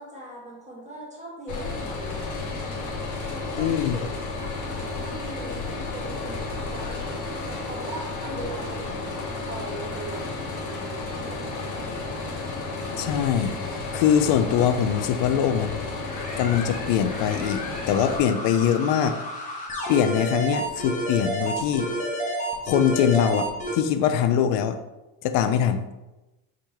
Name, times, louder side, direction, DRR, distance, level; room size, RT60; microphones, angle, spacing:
voice 1, 0.0-2.9 3.3-7.2 7.5-9.2 9.4-12.0, right 1 dB, 15° right, -4 dB, 1.5 m, -40 dB
sound 1, 1.5-18.2, left 3 dB, 40° left, 1.0 m, -32 dB
voice 2, 3.6-4.0 13.0-13.5 13.9-15.8 16.4-19.2 19.9-21.9 22.6-23.5 23.7-24.8 25.2-25.8, left 9 dB, 65° left, 9 dB, 0.5 m, -22 dB
sound 2, 16.1-23.8, right 1 dB, 15° left, 1.2 m, -31 dB
4.9 x 3.6 x 2.9 m, 1.0 s
supercardioid pair, 110°, 48 cm